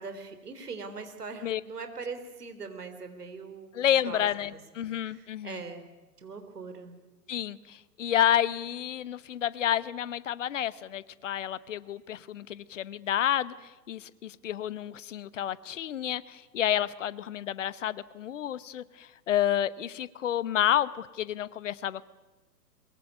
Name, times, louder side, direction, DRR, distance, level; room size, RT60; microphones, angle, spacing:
voice 1, 0.0-3.7 4.0-4.6 5.0-5.9 6.2-6.9, right 4 dB, 70° right, 8 dB, 3.7 m, -41 dB
voice 2, 3.7-5.6 7.3-13.5 13.9-22.1, left 11 dB, 50° left, 19 dB, 1.1 m, -30 dB
22.5 x 22.0 x 9.5 m, 1.1 s
figure-of-eight pair, 115°, 48 cm